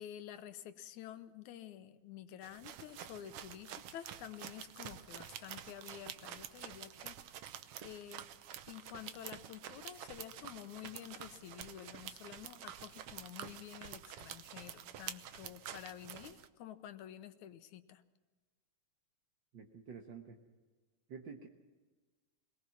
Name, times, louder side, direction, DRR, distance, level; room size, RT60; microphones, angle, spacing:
voice 1, 0.0-7.5 7.8-8.3 8.7-18.0, left 11 dB, 75° left, 10 dB, 2.2 m, -50 dB
sound 1, 2.4-16.5, right 10 dB, 75° right, 1.4 m, -49 dB
voice 2, 19.5-20.4 21.1-21.5, right 6 dB, 55° right, 2 dB, 1.3 m, -49 dB
22.5 x 20.0 x 6.0 m, 1.3 s
omnidirectional pair, 3.5 m